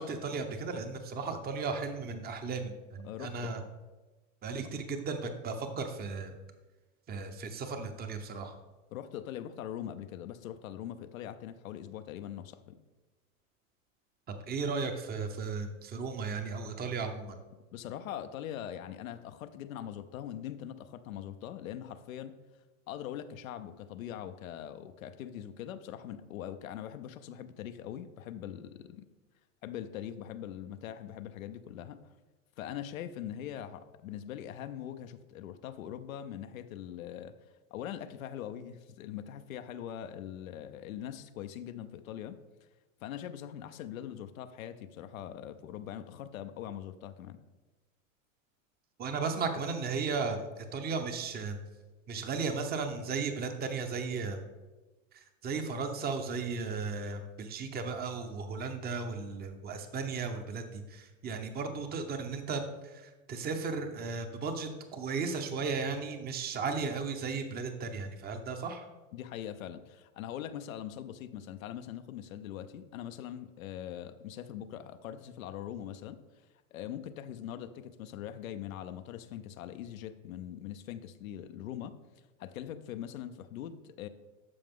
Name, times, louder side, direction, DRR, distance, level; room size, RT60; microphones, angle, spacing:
voice 1, 0.0-3.6 4.4-6.3 7.1-8.5 14.4-17.4 49.0-51.6 52.1-54.4 55.1-68.9, right 4 dB, 25° right, 7 dB, 0.9 m, -35 dB
voice 2, 3.0-3.5 8.9-12.8 17.7-22.3 22.9-29.0 29.6-32.0 32.6-37.3 37.7-42.4 43.0-47.4 69.1-76.4 76.7-82.0 82.4-84.1, left 10 dB, 85° left, 9 dB, 0.7 m, -42 dB
13.0 x 4.8 x 3.7 m, 1.2 s
supercardioid pair, 120°, 40 cm